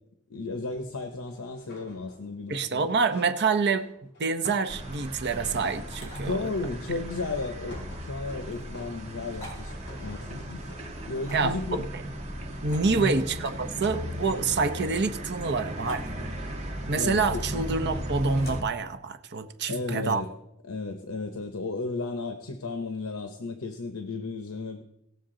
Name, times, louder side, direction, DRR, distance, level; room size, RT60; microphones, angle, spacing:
voice 1, 0.3-2.9 6.1-10.7 11.1-11.9 12.9-13.2 16.9-17.9 19.7-20.3 20.6-24.8, left 3 dB, 70° left, 6 dB, 0.9 m, -34 dB
sound 1, 1.2-2.6 2.9-6.2 7.2-7.4 7.7-11.9 12.3-12.5, left 1 dB, 50° left, 2.7 m, -50 dB
voice 2, 2.5-3.9 4.2-6.4 11.3-12.0 12.6-16.1 16.9-20.2, right 4 dB, 50° right, 9 dB, 0.8 m, -27 dB
sound 2, 4.7-18.6, equal, 30° right, 1.6 m, -37 dB
sound 3, 5.9-6.2 8.4-8.6 9.3-9.6 11.2-11.6 12.6-13.5 14.5-15.1 15.8-16.1 17.1-17.5 18.4-18.7 19.6-20.3, equal, 30° left, 4.2 m, -47 dB
18.0 x 6.8 x 3.8 m, 0.82 s
head